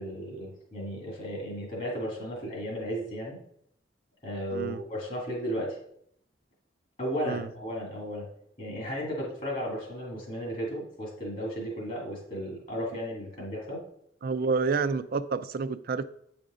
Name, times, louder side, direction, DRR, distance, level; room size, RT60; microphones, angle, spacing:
voice 1, 0.0-3.4 4.2-5.8 7.0-8.3 8.6-13.8, equal, 45° left, 2.2 m, -34 dB
voice 2, 14.2-16.0, right 4 dB, 50° right, 0.4 m, -29 dB
8.4 x 5.1 x 3.7 m
head